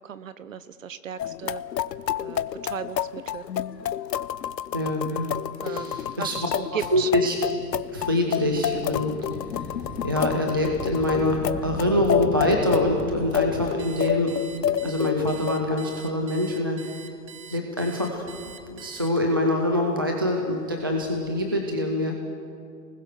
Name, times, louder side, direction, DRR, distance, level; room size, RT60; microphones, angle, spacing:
voice 1, 0.0-1.6 2.2-3.5 5.6-7.1, right 8 dB, 50° right, 14 dB, 0.9 m, -36 dB
sound 1, 1.2-15.5, left 10 dB, 80° left, 0.9 m, -29 dB
voice 2, 4.7-5.3 5.6-6.4 6.7-7.3 7.9-9.1 9.5-9.6 10.0-14.3 14.8-16.8 17.5-18.2 18.6-22.1, left 1 dB, 15° right, 1 dB, 0.5 m, -25 dB
Thunder / Rain, 7.2-16.1 16.9-17.0 17.9-19.2 20.7-21.5, left 2 dB, 10° left, 2.5 m, -39 dB
Alarm, 13.8-19.4, right 7 dB, 85° right, 2.2 m, -45 dB
26.0 x 20.5 x 6.5 m, 2.3 s
hypercardioid pair, 160°, 50 cm